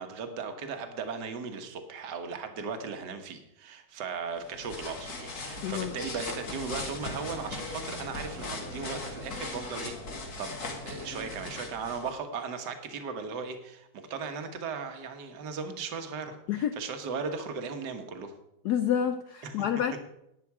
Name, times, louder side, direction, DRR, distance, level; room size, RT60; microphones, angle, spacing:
voice 1, 0.0-10.0 10.4-10.6 10.8-18.3 19.4-19.6, right 5 dB, 55° right, 7 dB, 1.7 m, -37 dB
sound 1, 4.4-12.1, left 2 dB, 45° left, 2.2 m, -39 dB
voice 2, 5.6-5.9 16.5-16.7 18.6-20.0, left 9 dB, 80° left, 10 dB, 0.8 m, -28 dB
11.5 x 9.2 x 4.8 m, 0.83 s
omnidirectional pair, 2.3 m